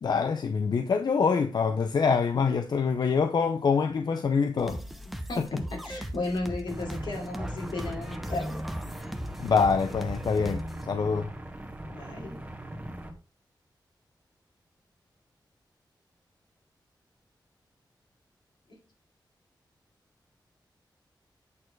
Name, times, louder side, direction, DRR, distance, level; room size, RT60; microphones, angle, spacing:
voice 1, 0.0-4.8 9.4-11.3, left 5 dB, 65° left, 0.6 m, -25 dB
sound 1, 4.6-10.8, equal, ahead, 0.8 m, -39 dB
voice 2, 5.3-8.7 11.9-12.4 18.7-18.8, left 2 dB, 85° left, 3.0 m, -34 dB
sound 2, 6.7-13.1, right 1 dB, 20° right, 1.5 m, -39 dB
8.5 x 4.4 x 4.6 m
wide cardioid pair, 155°, 8 cm